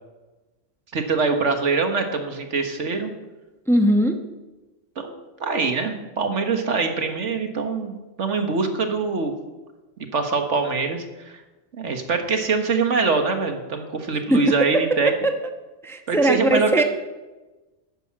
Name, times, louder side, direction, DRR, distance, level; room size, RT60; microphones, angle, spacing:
voice 1, 0.9-3.1 5.0-5.1 5.4-9.3 10.1-11.4 11.7-15.1 16.1-16.7, right 4 dB, 70° right, 5 dB, 1.8 m, -24 dB
voice 2, 3.7-4.2 14.3-15.3 15.8-16.8, right 1 dB, ahead, 5 dB, 1.0 m, -20 dB
11.5 x 10.0 x 7.5 m, 1.1 s
omnidirectional pair, 1.3 m